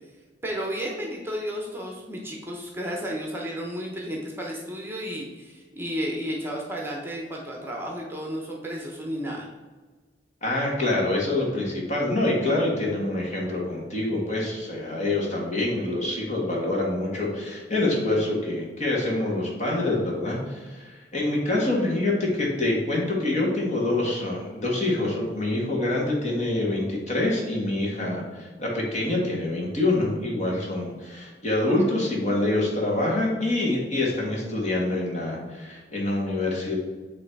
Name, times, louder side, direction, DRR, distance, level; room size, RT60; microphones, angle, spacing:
voice 1, 0.4-9.5, equal, 15° right, -1 dB, 0.9 m, -32 dB
voice 2, 10.4-36.8, left 2 dB, 40° left, -2 dB, 1.8 m, -26 dB
8.6 x 3.3 x 4.6 m, 1.3 s
head